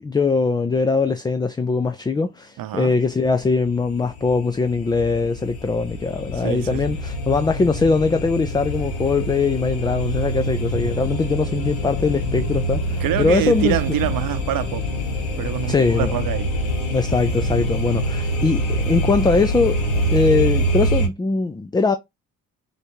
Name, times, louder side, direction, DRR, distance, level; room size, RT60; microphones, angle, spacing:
voice 1, 0.0-13.8 15.7-16.1 16.9-19.8 20.1-22.0, left 4 dB, 10° left, 0.4 m, -21 dB
voice 2, 2.6-2.9 6.3-7.0 13.0-14.9 15.4-16.5, right 13 dB, 50° right, 0.8 m, -25 dB
sound 1, 3.2-21.1, equal, 75° left, 1.2 m, -25 dB
6.2 x 2.6 x 2.9 m
hypercardioid pair, 50°, 42 cm